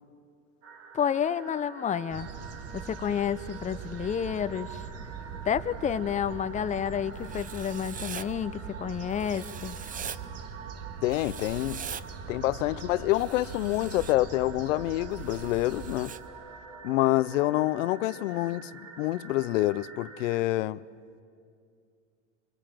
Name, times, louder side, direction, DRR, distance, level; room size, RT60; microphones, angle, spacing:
sound 1, 0.6-20.4, right 5 dB, 80° right, 2.2 m, -47 dB
voice 1, 0.9-2.3 2.7-4.8 5.4-9.8, left 8 dB, 20° left, 0.7 m, -30 dB
sound 2, 2.1-16.1, right 6 dB, 40° right, 1.9 m, -42 dB
Writing, 7.2-8.3 9.2-10.2 11.1-12.0 13.1-14.1 15.2-16.2, right 7 dB, 20° right, 0.7 m, -42 dB
voice 2, 11.0-11.8 12.3-16.1 16.8-18.7 19.0-20.8, left 17 dB, 75° left, 0.7 m, -27 dB
27.0 x 24.5 x 7.5 m
hypercardioid pair, 95°, 38 cm